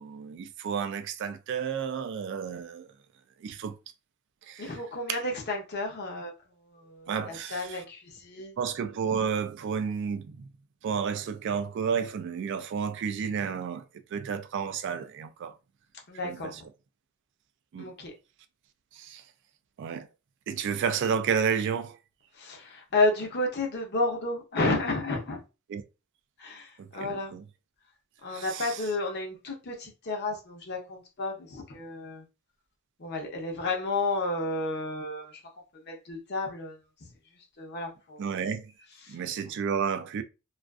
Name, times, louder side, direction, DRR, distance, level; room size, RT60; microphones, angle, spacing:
voice 1, 0.0-2.9 3.4-3.8 4.5-4.8 5.1-5.2 7.1-7.8 8.6-10.5 10.8-13.8 14.1-15.5 16.2-16.6 17.7-17.9 18.9-19.2 19.8-20.1 20.5-22.0 25.7-25.8 26.8-27.4 28.3-28.9 38.2-38.7 39.1-40.2, right 6 dB, 60° right, 0.3 m, -31 dB
voice 2, 4.6-6.3 6.8-8.5 16.1-16.6 17.8-18.1 22.4-25.4 26.4-27.3 28.2-32.2 33.0-35.3 35.9-36.8 37.6-38.2 39.0-39.1, left 2 dB, 55° left, 0.7 m, -31 dB
2.5 x 2.4 x 2.3 m
head